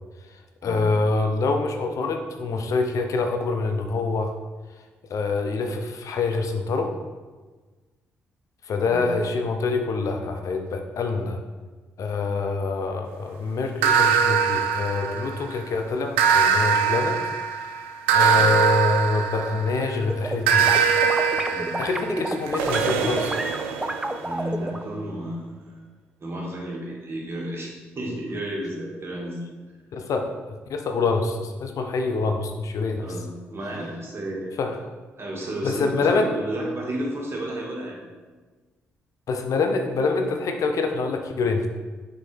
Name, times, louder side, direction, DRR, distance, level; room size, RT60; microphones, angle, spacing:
voice 1, 0.6-4.3 5.1-7.0 8.6-11.4 12.0-17.2 18.1-20.7 21.8-23.4 29.9-30.3 30.7-33.0 34.6-34.8 35.6-36.3 39.3-41.7, left 3 dB, 60° left, 5 dB, 0.6 m, -25 dB
sound 1, 13.8-15.5 16.2-19.9 20.5-24.2, right 6 dB, 85° right, 0.4 m, -22 dB
sound 2, 19.8-20.4 20.7-24.9, right 1 dB, 10° right, 0.5 m, -29 dB
voice 2, 24.2-25.7 26.2-29.4 33.0-34.5 35.2-38.0, right 1 dB, 40° right, -3 dB, 1.9 m, -32 dB
6.2 x 4.8 x 3.3 m, 1.3 s
hypercardioid pair, 40°, 6 cm